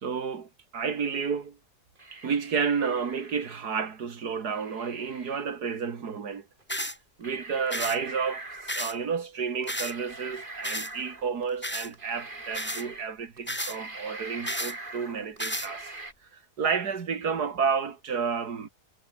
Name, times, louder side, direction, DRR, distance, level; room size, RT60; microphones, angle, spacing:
voice 1, 0.0-1.6 2.1-6.5 7.2-8.4 8.7-15.9 16.3-18.7, right 6 dB, 85° right, 2.5 m, -31 dB
sound 1, 2.0-3.6 4.5-5.4 6.6-6.7 7.2-8.9 9.6-11.4 11.9-13.1 13.4-16.1, right 2 dB, 30° right, 3.6 m, -43 dB
sound 2, 6.7-7.0 7.7-8.0 8.7-9.0 9.7-9.9 10.6-10.9 11.6-11.9 12.5-12.8 13.5-13.8 14.5-14.7 15.4-15.7, equal, 5° left, 5.6 m, -32 dB
omnidirectional pair, 1.7 m